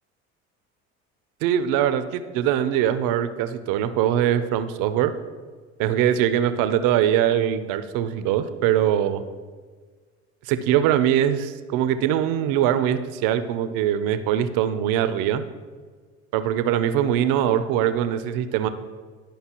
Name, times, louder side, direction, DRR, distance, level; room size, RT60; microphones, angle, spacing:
voice 1, 1.4-5.1 5.8-9.2 10.5-15.4 16.3-18.7, right 10 dB, 70° right, 12 dB, 0.6 m, -22 dB
11.5 x 5.3 x 3.0 m, 1.5 s
hypercardioid pair, 70°, 34 cm